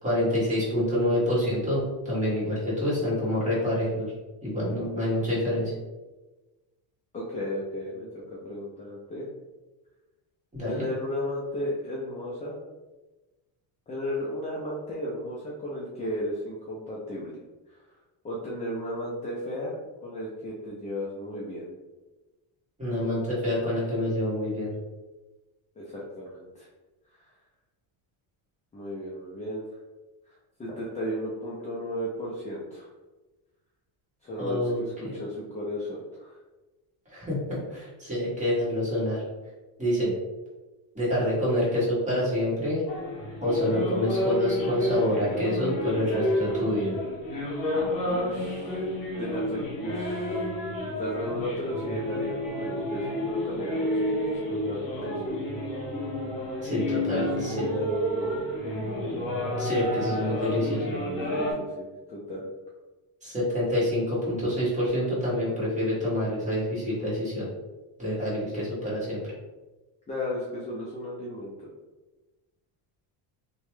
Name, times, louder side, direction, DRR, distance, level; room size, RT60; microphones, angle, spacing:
voice 1, 0.0-4.1 4.4-5.7 10.5-10.9 22.8-24.7 34.4-35.2 37.1-39.2 39.8-40.1 40.9-42.8 43.4-47.0 56.6-57.7 59.6-60.9 63.2-67.5 68.0-69.2, left 1 dB, 15° right, -8 dB, 1.4 m, -27 dB
voice 2, 7.1-9.3 10.6-12.6 13.9-17.4 17.7-17.8 18.2-21.7 25.8-26.7 27.2-27.3 28.7-29.6 30.6-32.9 34.2-36.4 48.0-50.5 51.0-55.2 57.1-58.5 61.3-62.5 70.1-71.7, left 1 dB, 15° left, -5 dB, 0.4 m, -34 dB
sound 1, 42.9-61.5, left 1 dB, 40° left, 1.0 m, -30 dB
2.9 x 2.3 x 3.1 m, 1.2 s
cardioid pair, 125°, 50 cm